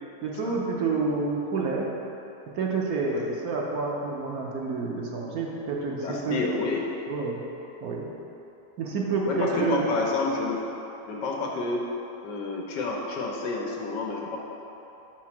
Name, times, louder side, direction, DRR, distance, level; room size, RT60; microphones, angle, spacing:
voice 1, 0.2-1.9 2.5-6.4 7.1-7.4 7.8-8.0 8.8-9.9, right 4 dB, 65° right, -2 dB, 1.1 m, -28 dB
voice 2, 6.0-6.9 9.3-10.7 11.1-11.9 12.2-14.4, left 3 dB, 85° left, -1 dB, 1.5 m, -29 dB
4.6 x 4.2 x 5.9 m, 3.0 s
omnidirectional pair, 1.8 m